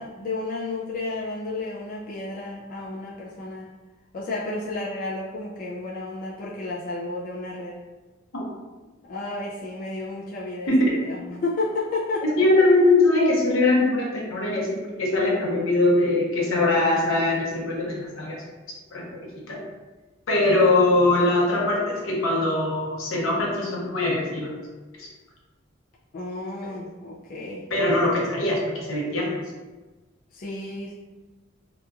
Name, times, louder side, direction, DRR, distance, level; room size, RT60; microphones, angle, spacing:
voice 1, 0.0-3.7 4.1-7.8 9.1-12.4 26.1-27.6 30.3-30.9, left 2 dB, 40° left, -5 dB, 0.3 m, -32 dB
voice 2, 12.2-18.4 18.9-19.6 20.3-24.5 25.0-25.1 27.7-29.4, left 2 dB, 80° left, -3 dB, 0.7 m, -22 dB
2.8 x 2.4 x 2.3 m, 1.2 s
head